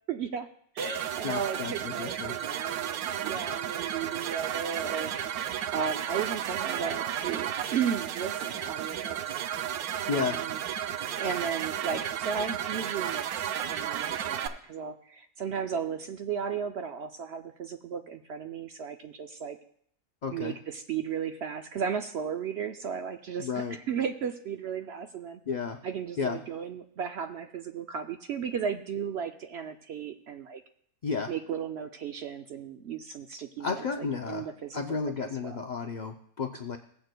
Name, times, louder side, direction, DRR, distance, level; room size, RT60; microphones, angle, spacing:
voice 1, 0.1-0.5 0.7-5.1 5.7-9.3 10.1-10.6 11.2-19.6 20.3-25.4 25.8-30.6 31.3-35.6, right 7 dB, 65° right, 7 dB, 0.7 m, -35 dB
sound 1, 0.8-14.5, right 10 dB, 90° right, 1.1 m, -33 dB
voice 2, 1.2-2.3 10.1-10.4 20.2-20.5 23.4-23.8 25.5-25.8 26.2-26.4 31.0-31.3 33.6-34.5 34.7-36.8, left 5 dB, 70° left, 4 dB, 0.4 m, -32 dB
17.0 x 7.8 x 2.2 m, 0.65 s
omnidirectional pair, 1.5 m